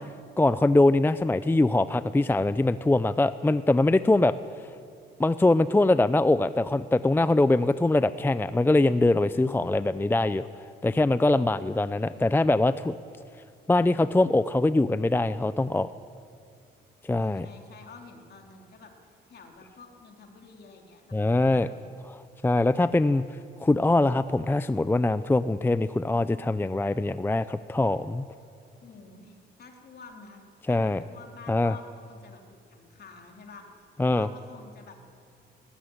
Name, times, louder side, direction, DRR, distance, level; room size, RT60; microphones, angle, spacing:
voice 1, 0.4-4.3 5.2-10.5 10.8-12.9 13.7-15.9 17.0-17.5 21.1-21.7 22.1-23.2 23.6-28.2 30.7-31.0 31.5-31.7 34.0-34.3, left 2 dB, 10° left, 14 dB, 0.5 m, -23 dB
voice 2, 11.5-12.4 17.1-21.9 28.8-33.6 34.1-35.0, left 4 dB, 55° left, 2 dB, 3.4 m, -49 dB
19.5 x 14.5 x 9.8 m, 2.3 s
cardioid pair, 90°, 20 cm